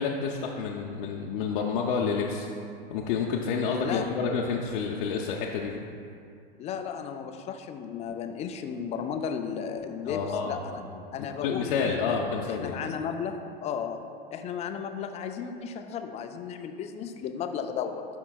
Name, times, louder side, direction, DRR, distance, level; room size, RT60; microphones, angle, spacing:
voice 1, 0.0-2.5 2.9-5.7 10.1-10.6 11.2-12.8, left 5 dB, 60° left, -1 dB, 0.6 m, -29 dB
voice 2, 6.6-10.8 11.1-12.2 12.4-14.0 14.3-18.1, left 7 dB, 25° left, 7 dB, 0.4 m, -34 dB
11.0 x 4.6 x 2.3 m, 2.4 s
hypercardioid pair, 100°, 30 cm